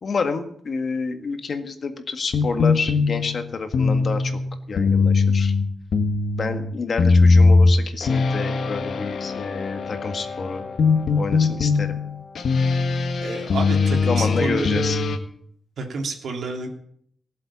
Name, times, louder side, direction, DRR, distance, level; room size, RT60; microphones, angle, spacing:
voice 1, 0.0-4.4 4.7-5.5 6.4-10.6 11.2-12.0 14.0-15.0, left 4 dB, 45° left, 7 dB, 1.8 m, -28 dB
sound 1, 2.3-15.2, left 4 dB, 65° left, 1.6 m, -20 dB
voice 2, 13.2-14.8 15.8-16.7, right 3 dB, 75° right, 1 dB, 3.1 m, -29 dB
18.0 x 7.7 x 8.6 m, 0.65 s
wide cardioid pair, 165°, 0 cm